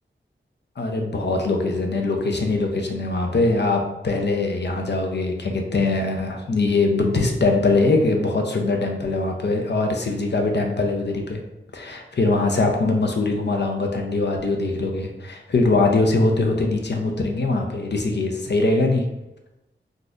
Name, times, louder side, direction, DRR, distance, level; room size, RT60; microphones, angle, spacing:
voice 1, 0.8-11.4 11.7-19.1, left 3 dB, 60° left, 3 dB, 0.6 m, -22 dB
3.9 x 2.5 x 2.4 m, 0.97 s
wide cardioid pair, 60°, 20 cm